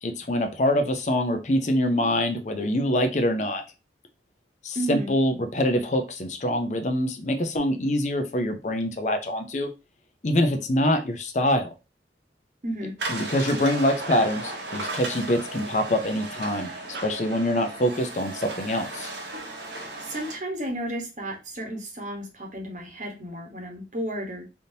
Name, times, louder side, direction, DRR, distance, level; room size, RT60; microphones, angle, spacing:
voice 1, 0.0-3.6 4.6-9.7 10.2-11.7 13.1-16.7 17.0-19.1, left 1 dB, 40° left, 6 dB, 0.5 m, -25 dB
voice 2, 4.7-5.1 12.6-12.9 19.6-24.4, right 1 dB, 40° right, 1 dB, 1.0 m, -33 dB
sound 1, 13.0-20.4, right 2 dB, 80° right, 0.9 m, -35 dB
3.5 x 2.7 x 2.6 m, 0.29 s
head